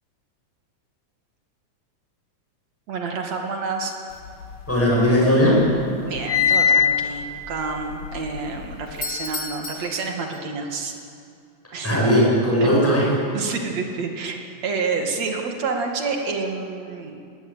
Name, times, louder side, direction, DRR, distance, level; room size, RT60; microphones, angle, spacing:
voice 1, 2.9-3.9 6.1-10.9 11.7-12.0 12.6-12.7 13.3-17.2, right 4 dB, 60° right, 2 dB, 3.3 m, -28 dB
sound 1, 4.3-5.3 5.6-9.0, left 7 dB, 90° left, 2.7 m, -23 dB
voice 2, 4.7-5.7 11.8-13.1, equal, 5° left, -5 dB, 7.7 m, -18 dB
Doorbell, 8.9-10.8, left 3 dB, 25° left, 2.4 m, -33 dB
20.5 x 18.0 x 9.2 m, 2.4 s
omnidirectional pair, 3.5 m